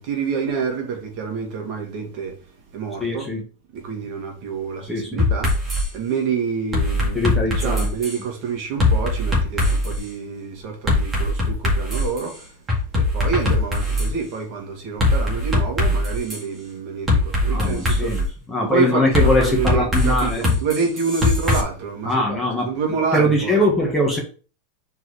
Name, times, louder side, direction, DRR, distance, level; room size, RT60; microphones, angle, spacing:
voice 1, 0.0-2.4 2.7-3.3 3.7-5.5 5.9-12.6 12.9-18.1 18.6-23.6, right 5 dB, 45° right, 2.2 m, -27 dB
voice 2, 3.0-3.4 4.9-5.2 7.0-7.9 17.5-18.2 18.5-20.4 22.0-22.7 23.1-24.2, left 1 dB, 10° left, 1.5 m, -21 dB
sound 1, 5.2-5.9 6.7-8.2 8.8-10.0 10.9-12.2 12.7-14.1 15.0-16.4 17.1-18.3 19.1-21.6, left 1 dB, 10° right, 2.0 m, -20 dB
4.6 x 4.6 x 4.8 m
supercardioid pair, 155°, 0 cm